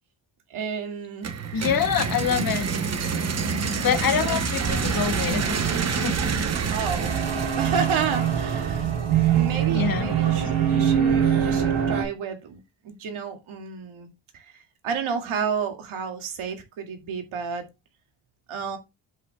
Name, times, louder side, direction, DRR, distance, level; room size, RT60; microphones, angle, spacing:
voice 1, 0.5-1.3 4.0-4.4 6.7-7.2 7.5-8.9 9.3-12.6 12.8-17.7 18.5-18.8, right 6 dB, 90° right, 2.2 m, -31 dB
sound 1, 1.2-9.0, right 5 dB, 30° right, 1.0 m, -28 dB
voice 2, 1.5-2.7 3.8-5.4 5.8-6.2 9.7-10.1 10.4-10.5, left 8 dB, 45° left, 1.3 m, -25 dB
sound 2, 4.6-12.0, right 9 dB, 70° right, 4.3 m, -24 dB
9.9 x 8.3 x 2.3 m
wide cardioid pair, 170°, 48 cm